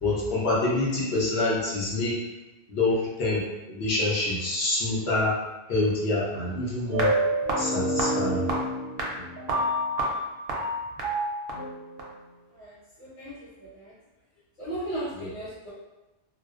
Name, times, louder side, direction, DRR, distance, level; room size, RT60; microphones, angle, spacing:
voice 1, 0.0-2.1 2.7-3.4 3.7-5.3 5.7-7.1 7.6-8.4 9.2-9.3 15.2-15.3, left 2 dB, 60° left, -6 dB, 1.0 m, -26 dB
sound 1, 6.9-12.0, right 1 dB, 60° right, 0.7 m, -28 dB
voice 2, 12.5-13.9 14.6-15.7, right 1 dB, 80° left, -12 dB, 1.3 m, -37 dB
2.5 x 2.1 x 2.4 m, 1.1 s
omnidirectional pair, 1.2 m